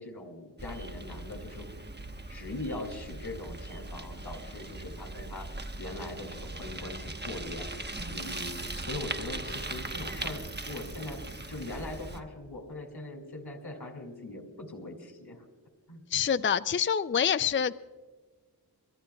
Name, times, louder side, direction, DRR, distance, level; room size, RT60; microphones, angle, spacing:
voice 1, 0.0-1.7 2.3-11.2 11.5-15.5 15.9-16.0, left 2 dB, 85° left, 4 dB, 2.4 m, -41 dB
Bicycle, 0.6-12.2, right 2 dB, 25° right, 1.0 m, -39 dB
voice 2, 16.1-17.7, left 8 dB, 35° left, 14 dB, 0.4 m, -26 dB
29.0 x 13.0 x 2.3 m, 1.4 s
wide cardioid pair, 55°, 38 cm